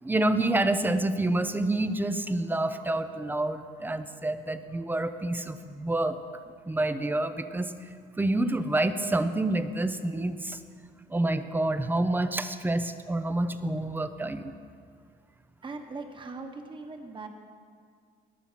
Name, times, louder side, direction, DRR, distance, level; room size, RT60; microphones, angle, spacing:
voice 1, 0.0-6.2 6.7-7.9 8.2-10.6 11.1-14.5, right 2 dB, 10° right, 10 dB, 0.7 m, -28 dB
voice 2, 15.6-17.3, right 3 dB, 30° right, 5 dB, 1.5 m, -40 dB
20.5 x 7.0 x 5.8 m, 2.1 s
cardioid pair, 110°, 17 cm